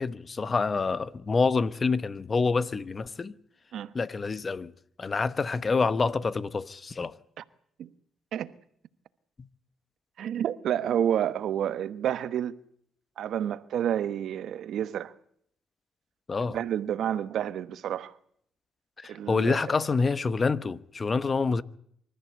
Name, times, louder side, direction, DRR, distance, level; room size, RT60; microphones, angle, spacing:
voice 1, 0.0-3.3 3.9-4.7 5.0-7.1 9.4-9.5 16.3-16.6 19.0-21.6, left 4 dB, 35° left, 1.0 m, -27 dB
voice 2, 10.2-12.5 13.2-15.1 16.4-18.1 19.1-19.6, right 10 dB, 70° right, 1.1 m, -29 dB
25.5 x 14.0 x 8.0 m
cardioid pair, 90°, 0 cm